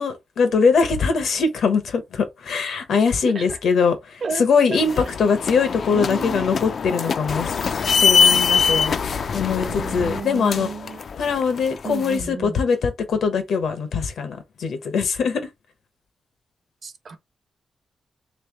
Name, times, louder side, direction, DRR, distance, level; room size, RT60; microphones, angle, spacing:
voice 1, 0.0-7.5 7.9-9.0 9.3-10.7 11.2-15.4, left 5 dB, 90° left, 1.1 m, -22 dB
voice 2, 3.2-3.6 4.2-4.4 4.7-5.0 5.9-6.5 9.4-11.1 11.8-12.6 16.8-17.2, right 5 dB, 50° right, 0.9 m, -33 dB
sound 1, 4.8-12.2, left 5 dB, 55° left, 0.4 m, -23 dB
3.6 x 3.3 x 3.4 m
wide cardioid pair, 135°, 0 cm